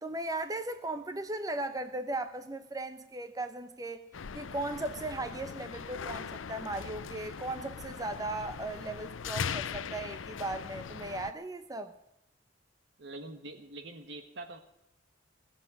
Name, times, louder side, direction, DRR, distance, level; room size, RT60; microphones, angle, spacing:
voice 1, 0.0-4.0 4.3-11.9, right 2 dB, 20° right, 9 dB, 0.8 m, -37 dB
sound 1, 4.1-11.3, left 6 dB, 80° left, 0.6 m, -40 dB
voice 2, 13.0-14.6, right 2 dB, 65° right, 8 dB, 1.4 m, -44 dB
18.0 x 7.5 x 9.6 m, 0.83 s
head